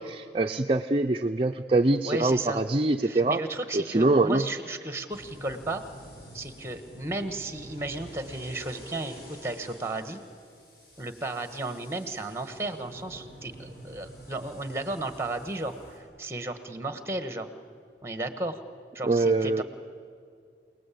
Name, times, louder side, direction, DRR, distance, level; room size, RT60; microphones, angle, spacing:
voice 1, 0.0-3.4 3.7-4.5 19.0-19.6, right 2 dB, 30° right, 5 dB, 0.5 m, -24 dB
voice 2, 2.0-2.6 3.0-5.8 6.3-10.2 11.0-17.5 18.0-18.6 18.9-19.6, right 2 dB, 15° right, 9 dB, 1.4 m, -34 dB
sound 1, 5.1-16.0, equal, 65° left, 7.2 m, -48 dB
28.0 x 19.0 x 8.6 m, 2.3 s
head